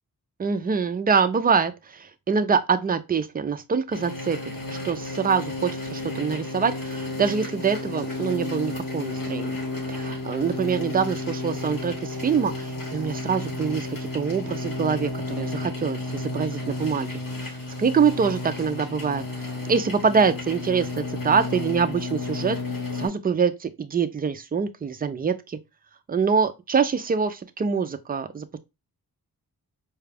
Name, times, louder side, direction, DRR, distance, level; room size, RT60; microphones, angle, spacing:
voice 1, 0.4-4.4 4.7-9.5 9.9-17.1 17.8-19.2 19.7-22.6 22.9-25.6 26.1-28.6, right 6 dB, 25° right, 0.4 m, -25 dB
sound 1, 3.9-23.1, left 2 dB, 65° left, 2.1 m, -32 dB
4.9 x 2.2 x 3.3 m
wide cardioid pair, 150°, 36 cm